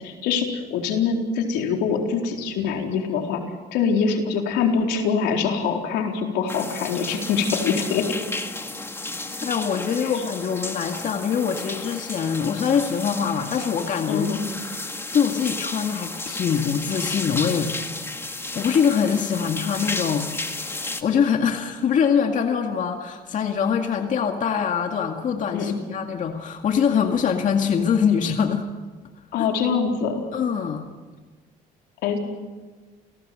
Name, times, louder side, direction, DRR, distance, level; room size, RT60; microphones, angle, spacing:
voice 1, 0.0-3.4 3.7-8.0 10.0-10.1 14.1-14.4 25.5-25.8 29.3-30.2 32.0-32.2, left 6 dB, 90° left, 2 dB, 4.2 m, -24 dB
sound 1, 6.5-21.0, left 2 dB, 15° left, 2.0 m, -33 dB
voice 2, 9.4-14.3 15.1-17.7 18.2-20.3 21.0-28.6 29.4-29.5 30.3-30.9, left 7 dB, 50° left, 4 dB, 2.1 m, -23 dB
29.5 x 18.0 x 7.8 m, 1.4 s
cardioid pair, 110°, 17 cm